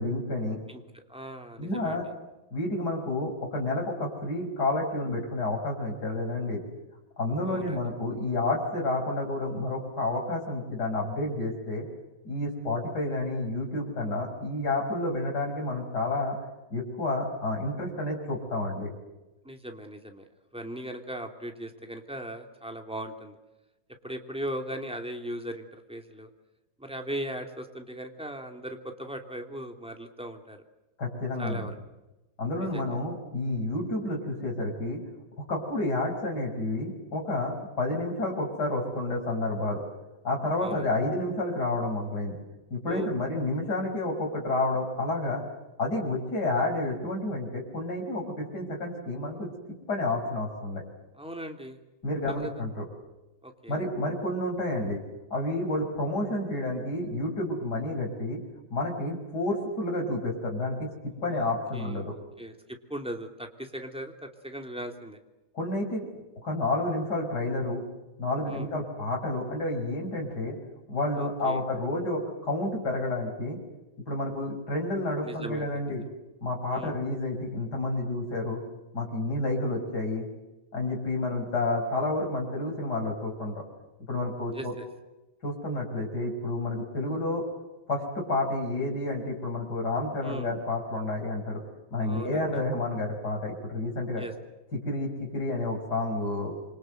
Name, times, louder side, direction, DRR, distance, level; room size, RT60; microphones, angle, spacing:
voice 1, 0.0-0.6 1.6-2.0 2.5-6.6 7.2-11.8 12.2-16.4 16.7-18.9 31.0-31.6 32.4-35.0 35.4-39.8 40.2-42.4 42.7-45.4 45.8-49.5 49.9-50.8 52.0-52.8 53.7-55.0 55.3-58.4 58.7-60.9 61.2-62.2 65.5-66.1 66.4-67.8 68.2-70.6 70.9-73.6 74.1-76.0 76.4-78.6 78.9-80.3 80.7-83.6 84.1-84.7 85.4-87.4 87.9-91.6 91.9-94.2 94.8-96.5, left 2 dB, 70° left, 0 dB, 6.5 m, -30 dB
voice 2, 0.7-2.0 7.4-7.8 19.4-20.2 20.5-23.4 24.0-26.3 26.8-30.6 31.4-31.8 32.6-32.8 40.6-40.9 42.9-43.1 51.2-51.8 52.3-52.5 53.4-53.8 61.3-62.5 62.9-65.2 68.5-68.7 71.1-71.6 75.2-75.7 76.0-76.1 76.7-76.9 84.5-84.9 90.2-90.5 92.0-92.5 94.2-94.3, right 1 dB, 5° right, 4 dB, 2.9 m, -38 dB
27.5 x 25.5 x 8.0 m, 1.0 s
omnidirectional pair, 1.9 m